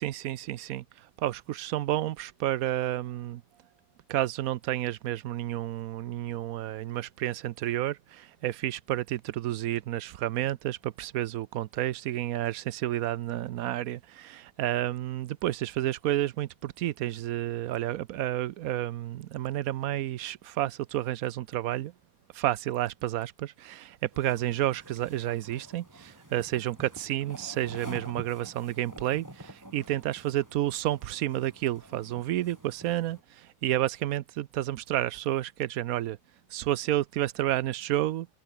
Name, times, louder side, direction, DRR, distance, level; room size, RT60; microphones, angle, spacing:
voice 1, 0.0-3.4 4.1-21.9 22.3-36.2 36.5-38.3, right 13 dB, 85° right, 1.1 m, -30 dB
sound 1, 24.1-33.2, right 1 dB, 10° right, 2.8 m, -48 dB
omnidirectional pair, 1.5 m